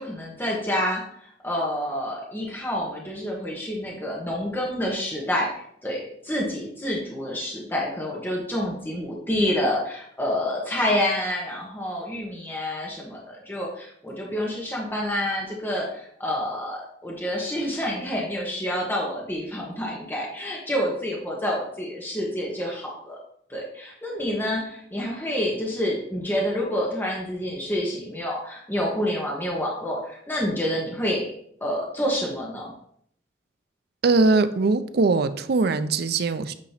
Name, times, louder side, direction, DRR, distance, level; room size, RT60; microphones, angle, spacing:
voice 1, 0.0-23.2 23.5-31.3 31.6-32.7, left 1 dB, 10° left, -3 dB, 1.1 m, -28 dB
voice 2, 34.0-36.5, right 3 dB, 55° right, 11 dB, 0.5 m, -21 dB
8.8 x 2.9 x 5.6 m, 0.67 s
head